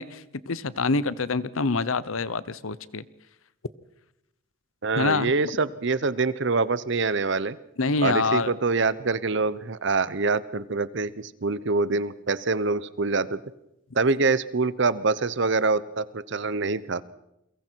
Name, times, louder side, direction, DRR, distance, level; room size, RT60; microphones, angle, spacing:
voice 1, 0.0-3.0 5.0-5.3 7.8-8.5, left 3 dB, 75° left, 0.8 m, -26 dB
voice 2, 4.8-7.6 8.0-13.4 13.9-17.0, right 3 dB, 60° right, 0.8 m, -25 dB
29.0 x 23.5 x 4.6 m
head